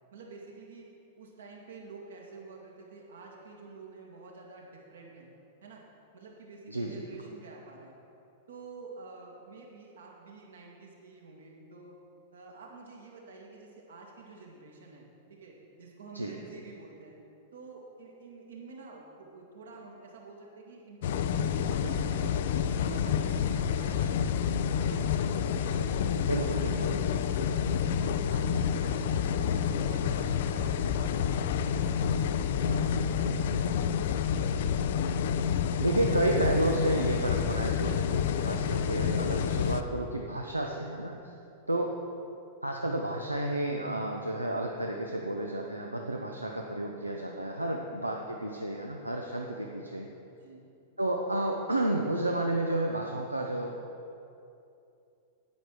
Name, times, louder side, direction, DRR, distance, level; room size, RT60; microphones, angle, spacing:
voice 1, 0.1-0.9 1.2-5.3 5.6-5.8 6.1-7.9 8.5-12.0 12.3-17.2 17.5-21.2 21.5-24.4 24.8-26.0 26.4-28.0 28.3-33.7 41.7-41.9 47.4-47.9 50.4-50.7, right 3 dB, 70° right, -1 dB, 2.0 m, -49 dB
voice 2, 6.7-7.0 16.1-16.3 26.3-26.9 35.8-41.3 41.7-42.0 42.6-50.1 51.0-53.7, right 1 dB, 85° right, 1 dB, 0.7 m, -31 dB
sound 1, 21.0-39.8, left 7 dB, 55° left, 0.4 m, -29 dB
9.5 x 8.8 x 4.8 m, 2.6 s
figure-of-eight pair, 95°, 0 cm